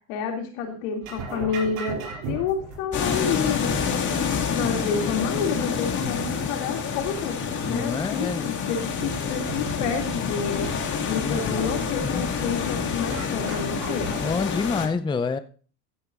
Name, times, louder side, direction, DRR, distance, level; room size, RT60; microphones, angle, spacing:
voice 1, 0.1-4.3 4.5-7.4 7.7-10.7 11.1-14.2, left 6 dB, 80° left, 2.6 m, -29 dB
sound 1, 1.0-14.2, right 4 dB, 70° right, 5.7 m, -39 dB
sound 2, 2.9-14.9, left 6 dB, 50° left, 2.2 m, -28 dB
voice 2, 7.6-8.5 11.2-11.7 12.0-12.3 14.2-15.4, left 4 dB, 10° left, 0.5 m, -28 dB
15.0 x 9.8 x 2.5 m
supercardioid pair, 85°, 38 cm